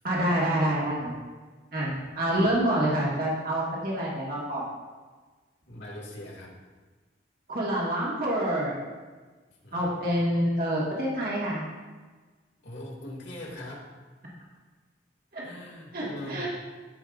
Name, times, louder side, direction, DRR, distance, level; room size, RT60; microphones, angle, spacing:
voice 1, 0.0-1.2 1.7-4.6 7.5-8.8 9.7-11.6 15.3-15.4 15.9-16.5, right 1 dB, 50° right, -5 dB, 2.0 m, -27 dB
voice 2, 5.7-6.5 9.6-9.8 12.6-13.9 15.4-16.5, left 1 dB, 80° left, -4 dB, 2.3 m, -41 dB
14.5 x 5.6 x 2.6 m, 1.3 s
head